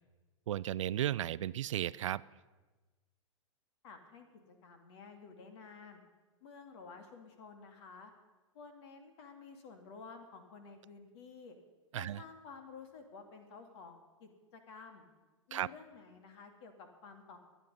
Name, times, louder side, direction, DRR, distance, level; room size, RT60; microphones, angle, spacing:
voice 1, 0.5-2.2 11.9-12.2 15.5-15.7, right 12 dB, 70° right, 20 dB, 0.4 m, -34 dB
voice 2, 3.8-4.3 4.6-6.0 6.4-8.1 8.5-11.6 12.0-15.1 15.5-17.4, left 5 dB, 60° left, 6 dB, 2.3 m, -52 dB
23.5 x 9.4 x 5.5 m, 1.2 s
hypercardioid pair, 100°, 16 cm